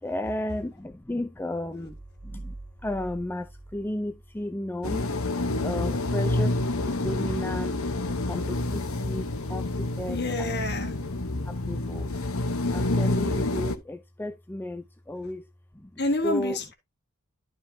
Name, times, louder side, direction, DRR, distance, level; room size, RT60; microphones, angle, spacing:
voice 1, 0.0-5.1 5.6-7.8 8.2-10.5 11.2-12.1 12.7-15.4 15.7-16.6, left 1 dB, 10° left, 0.5 m, -34 dB
sound 1, 1.8-4.5, right 2 dB, 40° right, 1.3 m, -44 dB
sound 2, 4.8-13.7, left 2 dB, 70° left, 1.1 m, -28 dB
voice 2, 10.1-11.0 16.0-16.7, left 2 dB, 50° left, 1.6 m, -28 dB
12.0 x 5.4 x 2.7 m
head